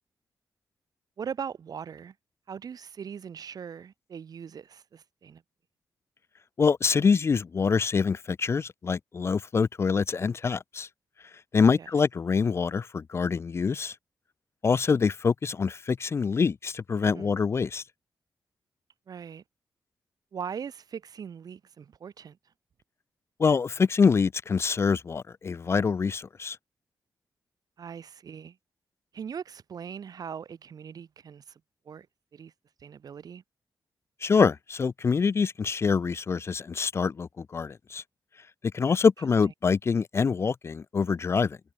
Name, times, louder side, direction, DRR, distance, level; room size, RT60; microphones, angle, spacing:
voice 1, 1.2-2.1 2.5-5.4 11.8-11.9 17.0-17.3 19.1-19.4 20.3-22.4 27.8-28.6 29.1-31.6 31.8-32.1 32.3-32.5 32.8-33.4, right 7 dB, 60° right, 3.2 m, -40 dB
voice 2, 6.6-10.9 11.5-14.0 14.6-17.8 23.4-26.6 34.2-38.0 38.7-41.6, left 5 dB, 40° left, 0.5 m, -25 dB
wide cardioid pair, 130°, 7 cm